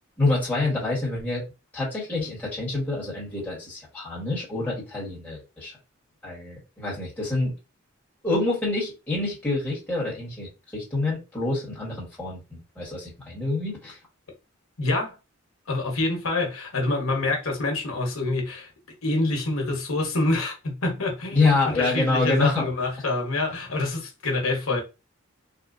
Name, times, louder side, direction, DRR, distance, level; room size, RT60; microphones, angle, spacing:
voice 1, 0.2-1.4 1.7-5.7 6.2-7.5 8.2-14.0 21.3-22.7, left 2 dB, 10° left, 1.4 m, -26 dB
voice 2, 14.8-15.2 15.7-18.7 19.0-24.8, left 2 dB, 85° left, 1.1 m, -26 dB
3.6 x 2.3 x 2.6 m
head